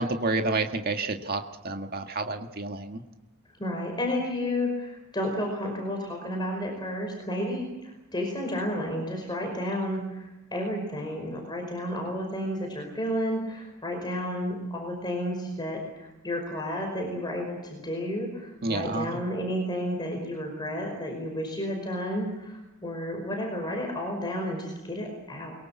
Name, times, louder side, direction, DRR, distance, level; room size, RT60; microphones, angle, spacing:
voice 1, 0.0-3.0 18.6-19.2, right 2 dB, 45° right, 4 dB, 2.0 m, -29 dB
voice 2, 3.6-25.5, equal, 20° left, 2 dB, 5.2 m, -31 dB
23.0 x 23.0 x 7.3 m, 0.97 s
head